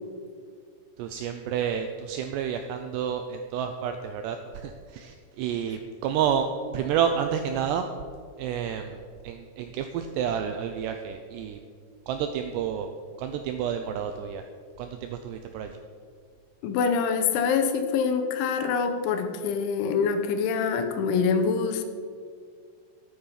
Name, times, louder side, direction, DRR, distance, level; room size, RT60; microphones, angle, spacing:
voice 1, 1.0-6.5 6.7-7.9 8.4-9.0 9.2-11.6 12.1-12.9 13.2-14.4 14.8-15.8, right 8 dB, 85° right, 7 dB, 2.4 m, -30 dB
voice 2, 16.6-21.8, left 5 dB, 80° left, 7 dB, 3.2 m, -25 dB
13.0 x 9.7 x 5.7 m, 2.1 s
omnidirectional pair, 5.6 m